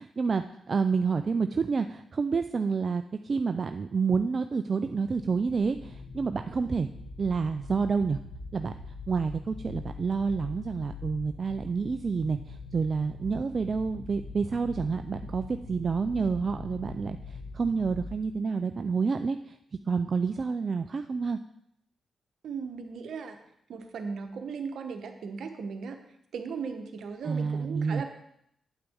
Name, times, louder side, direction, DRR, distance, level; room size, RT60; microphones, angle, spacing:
voice 1, 0.0-6.9 7.2-8.2 8.5-8.8 9.1-19.6 19.9-21.4 27.2-28.0, right 5 dB, 50° right, 8 dB, 0.4 m, -29 dB
sound 1, 5.0-18.1, left 3 dB, 60° left, 3.5 m, -43 dB
voice 2, 22.4-23.4 23.7-26.0 26.3-28.0, right 5 dB, 70° right, 6 dB, 0.9 m, -37 dB
8.7 x 8.2 x 3.5 m, 0.76 s
hypercardioid pair, 40°, 0 cm